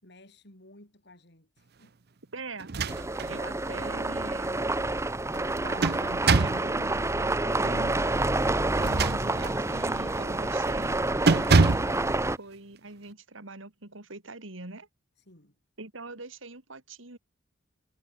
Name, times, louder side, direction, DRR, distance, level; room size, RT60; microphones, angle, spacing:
voice 1, 0.0-2.0 15.2-15.6, left 1 dB, 60° left, 5.7 m, -55 dB
voice 2, 2.3-2.7 3.3-4.7 5.6-8.1 8.8-11.0 12.2-14.9 15.8-17.2, right 2 dB, 90° right, 3.1 m, -43 dB
sound 1, 2.6-3.4 3.8-3.9 5.3-6.7 8.7-9.6 10.1-10.4 10.7-10.9 11.3-12.0, right 4 dB, 55° right, 0.7 m, -24 dB
sound 2, 2.9-12.4, right 2 dB, 15° right, 0.9 m, -28 dB
head